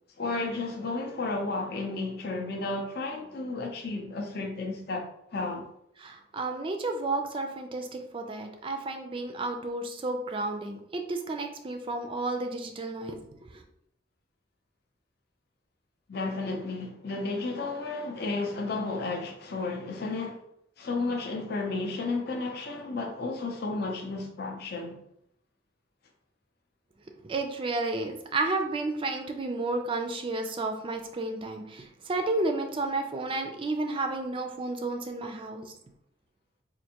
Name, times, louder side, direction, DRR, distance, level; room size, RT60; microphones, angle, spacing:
voice 1, 0.2-5.7 16.1-20.4 20.8-25.0, left 3 dB, 55° left, 0.5 m, -32 dB
voice 2, 6.0-13.2 27.2-35.7, right 2 dB, 25° right, 0.3 m, -32 dB
4.4 x 2.5 x 2.8 m
head